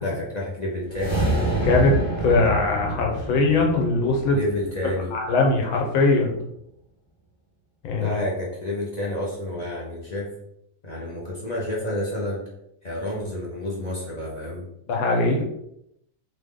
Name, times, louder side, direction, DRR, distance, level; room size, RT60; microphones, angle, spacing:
voice 1, 0.0-1.2 4.3-5.1 7.9-10.3 10.8-12.5 12.8-14.6, left 1 dB, 45° left, -4 dB, 0.5 m, -29 dB
sound 1, 0.9-5.3, right 2 dB, 15° left, 1.2 m, -27 dB
voice 2, 1.6-4.4 5.1-6.4 7.8-8.2 14.9-15.4, left 3 dB, 70° left, 1 dB, 1.7 m, -21 dB
3.9 x 3.6 x 3.8 m, 0.78 s
omnidirectional pair, 2.3 m